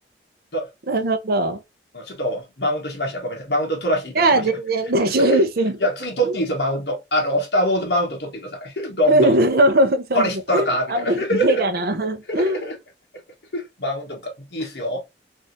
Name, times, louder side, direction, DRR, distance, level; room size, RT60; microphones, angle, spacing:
voice 1, 0.9-1.6 4.1-5.8 6.2-6.4 9.1-12.7, right 1 dB, 60° right, 0.6 m, -20 dB
voice 2, 1.9-4.4 5.3-5.4 5.8-9.4 10.1-11.6 12.3-12.7 13.5-15.0, equal, 70° left, 1.2 m, -24 dB
3.4 x 2.6 x 2.7 m
head